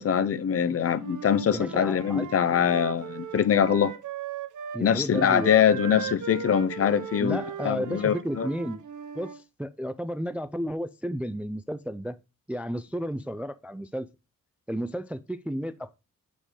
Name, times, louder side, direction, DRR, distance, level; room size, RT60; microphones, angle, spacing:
voice 1, 0.0-3.9 4.8-8.5, left 8 dB, 45° left, 0.5 m, -23 dB
Wind instrument woodwind instrument, 0.9-4.8 5.1-9.4, right 8 dB, 65° right, 0.7 m, -38 dB
voice 2, 1.5-2.3 4.7-5.6 5.9-6.1 7.2-8.8 9.1-12.2 12.5-14.1 14.7-16.0, equal, 5° right, 0.3 m, -33 dB
6.4 x 5.2 x 3.6 m
wide cardioid pair, 135°, 33 cm